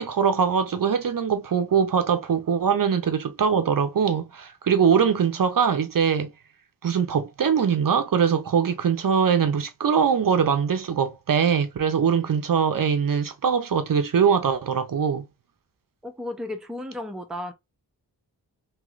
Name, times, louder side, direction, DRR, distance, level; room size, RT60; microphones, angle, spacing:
voice 1, 0.0-6.3 6.8-15.2, right 7 dB, 55° right, 0.5 m, -22 dB
voice 2, 16.0-17.5, left 1 dB, ahead, 0.5 m, -34 dB
3.0 x 2.9 x 2.4 m
wide cardioid pair, 90°, 41 cm